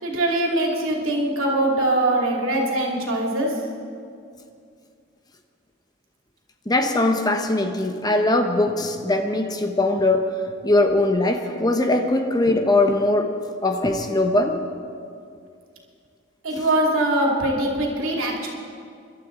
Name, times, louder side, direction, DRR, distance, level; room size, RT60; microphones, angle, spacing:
voice 1, 0.0-3.5 16.4-18.5, right 1 dB, 90° right, -1 dB, 2.6 m, -22 dB
voice 2, 6.7-10.3 10.6-13.3 13.6-14.5, left 2 dB, 20° left, 5 dB, 0.9 m, -21 dB
26.0 x 12.0 x 3.9 m, 2.4 s
head